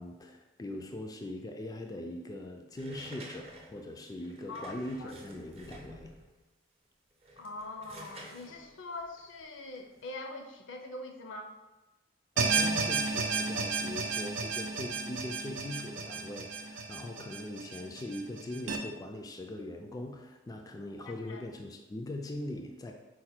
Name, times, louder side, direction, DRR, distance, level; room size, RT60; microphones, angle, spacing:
voice 1, 0.0-6.1 12.4-22.9, left 1 dB, 20° left, 2 dB, 0.3 m, -41 dB
sound 1, 2.7-6.4 7.1-10.1, right 1 dB, 35° right, 0.6 m, -50 dB
voice 2, 7.4-11.5 21.1-21.4, left 2 dB, 75° left, 4 dB, 0.6 m, -43 dB
sound 2, 12.4-18.8, right 4 dB, 80° right, 0.4 m, -33 dB
4.9 x 2.2 x 4.3 m, 1.1 s
head